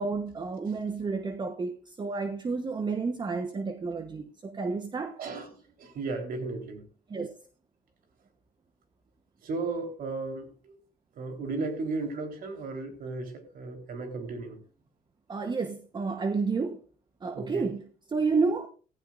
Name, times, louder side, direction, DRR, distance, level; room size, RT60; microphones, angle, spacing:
voice 1, 0.0-5.2 7.1-7.4 15.3-16.8 17.2-18.7, right 4 dB, 25° right, 1.1 m, -30 dB
voice 2, 5.2-5.5 5.8-6.8 9.4-10.7 11.2-14.6 17.3-17.7, right 3 dB, 60° right, 3.9 m, -35 dB
15.0 x 15.0 x 2.5 m
cardioid pair, 110°, 17 cm